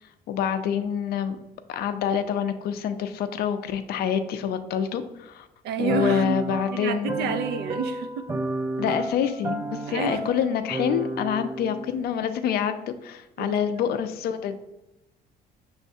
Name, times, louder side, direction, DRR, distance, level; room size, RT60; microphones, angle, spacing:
voice 1, 0.3-1.4 1.7-5.5 5.8-7.4 8.8-14.6, left 8 dB, 70° left, 0.5 m, -27 dB
voice 2, 5.6-6.4 6.7-8.3 9.9-10.2 13.4-13.6, right 5 dB, 75° right, 0.5 m, -29 dB
sound 1, 5.9-12.2, right 2 dB, 15° right, 0.3 m, -32 dB
6.1 x 3.2 x 2.7 m
cardioid pair, 110°, 17 cm